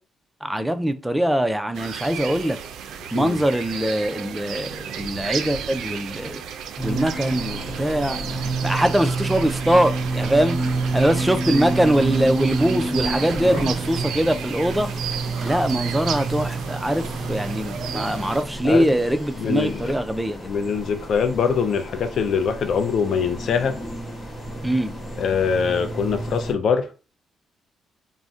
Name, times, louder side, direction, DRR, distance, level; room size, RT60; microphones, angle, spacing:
voice 1, 0.4-2.6 3.1-6.4 6.8-8.2 8.6-10.6 10.9-14.9 15.4-20.5 24.6-24.9, right 1 dB, 5° right, 0.3 m, -22 dB
sound 1, 1.7-18.4, right 7 dB, 85° right, 0.3 m, -34 dB
sound 2, 6.8-26.5, right 3 dB, 35° left, 1.2 m, -30 dB
Printer, 6.8-22.5, right 1 dB, 30° right, 0.8 m, -40 dB
voice 2, 19.4-19.9 20.4-23.8 25.2-26.9, left 6 dB, 65° left, 0.4 m, -23 dB
2.5 x 2.1 x 3.5 m
cardioid pair, 100°, 0 cm